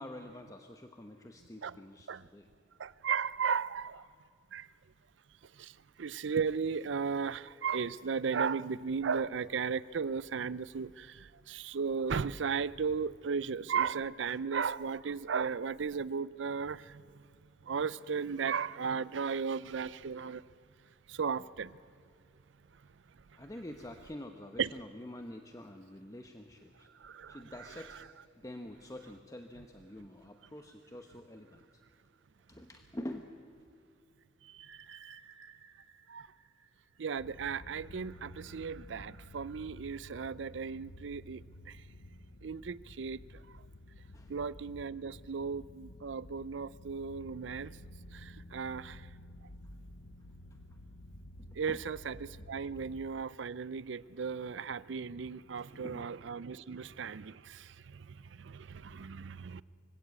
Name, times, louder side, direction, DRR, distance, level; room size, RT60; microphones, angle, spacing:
voice 1, 0.0-2.5 23.3-26.9 27.3-28.0 28.4-31.6 32.5-33.3 44.1-44.3 51.4-51.8 52.4-52.5 55.1-55.2 55.7-56.1 56.6-56.7, left 1 dB, 15° left, 0.9 m, -47 dB
voice 2, 2.8-4.1 4.5-4.7 5.6-17.2 17.7-20.4 21.1-21.8 24.6-24.7 27.0-27.4 34.4-35.1 36.1-36.3 37.0-41.8 42.4-43.2 44.3-47.7 48.1-49.1 51.6-59.6, right 6 dB, 70° right, 0.5 m, -36 dB
sound 1, 34.6-37.4, right 6 dB, 90° right, 1.3 m, -57 dB
sound 2, 37.2-53.1, left 1 dB, 80° left, 0.9 m, -52 dB
24.5 x 16.0 x 8.3 m
head